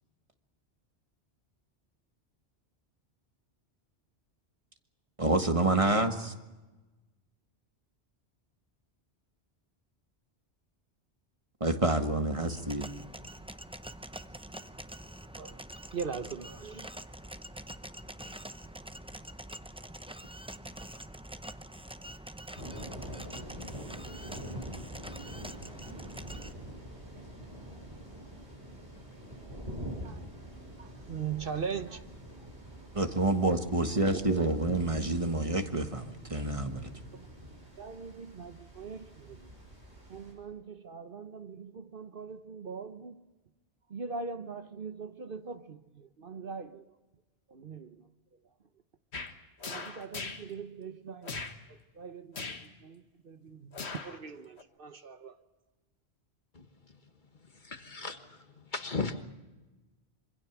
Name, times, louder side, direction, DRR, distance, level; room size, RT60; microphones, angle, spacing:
voice 1, 5.2-6.3 11.6-12.9 32.9-36.9, right 2 dB, 30° right, 1.5 m, -28 dB
sound 1, 12.3-26.5, right 1 dB, 5° right, 0.6 m, -45 dB
voice 2, 15.9-16.9 30.0-30.2 30.5-32.0 34.1-34.5 37.1-37.3 37.8-39.4 40.1-43.2 43.9-46.8 47.5-48.0 49.7-51.4 51.7-52.5 52.8-53.8 54.0-55.4, right 5 dB, 55° right, 1.1 m, -41 dB
sound 2, 22.5-40.3, right 1 dB, 80° right, 6.7 m, -45 dB
sound 3, 49.1-49.3 49.6-50.5 51.2-51.6 52.3-52.7 53.7-54.2 54.6-54.7, left 4 dB, 75° left, 1.8 m, -39 dB
voice 3, 57.6-58.4 58.7-59.2, left 4 dB, 45° left, 1.5 m, -35 dB
26.0 x 25.0 x 6.0 m
omnidirectional pair, 1.1 m